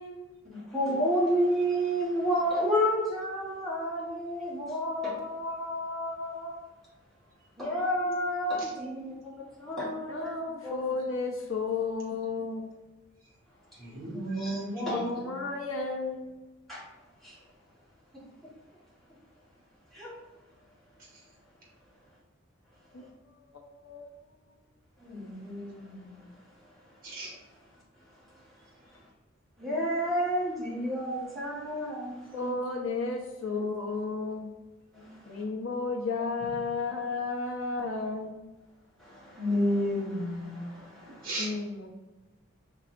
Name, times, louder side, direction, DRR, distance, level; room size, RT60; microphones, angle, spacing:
voice 1, 0.4-6.5 7.6-10.3 10.6-10.9 14.1-15.2 16.7-16.8 17.2-17.4 19.9-20.1 25.0-26.3 26.6-27.2 28.3-28.5 28.8-29.0 29.6-32.5 33.4-33.6 34.9-35.4 39.0-41.3, equal, ahead, -8 dB, 1.4 m, -31 dB
voice 2, 7.7-8.2 8.5-9.4 13.7-15.5 21.1-21.2 27.0-27.3 36.4-36.5 41.2-41.5, right 2 dB, 45° right, -3 dB, 1.5 m, -39 dB
voice 3, 10.1-12.7 14.9-16.2 22.9-23.0 23.5-24.1 32.3-34.5 35.3-38.4 41.4-41.9, left 4 dB, 80° left, 1 dB, 0.8 m, -33 dB
5.5 x 3.3 x 2.5 m, 1.1 s
head